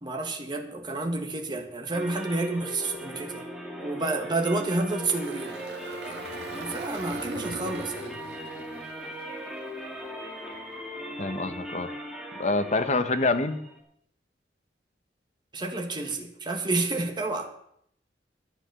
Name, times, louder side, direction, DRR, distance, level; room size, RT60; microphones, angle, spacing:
voice 1, 0.0-3.4 3.8-5.6 6.0-6.3 6.5-8.1 15.5-17.5, right 2 dB, 25° right, 3 dB, 1.5 m, -30 dB
sound 1, 1.9-13.8, equal, ahead, 2.0 m, -39 dB
Engine, 4.8-10.1, right 2 dB, 65° right, 1.6 m, -42 dB
voice 2, 11.2-11.9 12.4-13.6, left 3 dB, 40° left, 9 dB, 0.9 m, -26 dB
10.5 x 9.6 x 6.8 m, 0.71 s
head